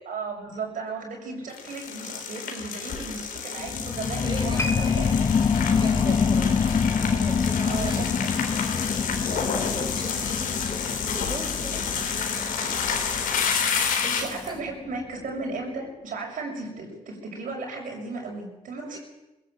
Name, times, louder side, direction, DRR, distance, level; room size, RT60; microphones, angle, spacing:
voice 1, 0.1-5.1 6.2-6.3 7.1-7.3 7.6-8.1 14.0-19.0, right 3 dB, 70° right, 0 dB, 7.0 m, -35 dB
sound 1, 1.5-14.5, left 6 dB, 80° left, 3.7 m, -30 dB
sound 2, 3.6-14.7 15.2-15.3, left 6 dB, 35° left, 0.7 m, -26 dB
voice 2, 4.2-4.9 5.7-6.8 7.2-8.1 8.5-12.8 14.4-14.5 18.9-19.0, right 2 dB, 30° right, 0 dB, 5.0 m, -39 dB
sound 3, 4.6-7.9 8.2-8.4 9.1-9.2, left 1 dB, 20° left, 1.5 m, -37 dB
20.0 x 17.0 x 8.0 m, 1.0 s
cardioid pair, 80°, 14 cm